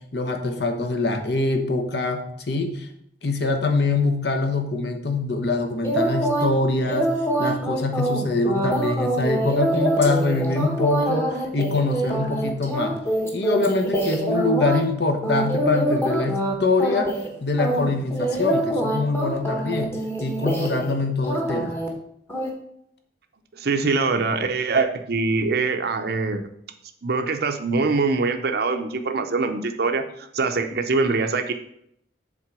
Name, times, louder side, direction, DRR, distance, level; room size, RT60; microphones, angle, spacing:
voice 1, 0.1-2.9 3.2-7.1 7.4-13.0 13.3-17.1 17.4-19.9 20.2-21.7, left 3 dB, 60° left, 5 dB, 1.1 m, -24 dB
sound 1, 5.8-6.5 6.9-14.8 15.2-16.5 16.8-17.3 17.6-20.9 21.2-21.9 22.3-22.5, right 1 dB, 15° left, 1.2 m, -25 dB
voice 2, 23.6-26.4 27.0-31.5, right 4 dB, 60° right, 6 dB, 0.6 m, -23 dB
7.4 x 3.8 x 6.0 m, 0.73 s
head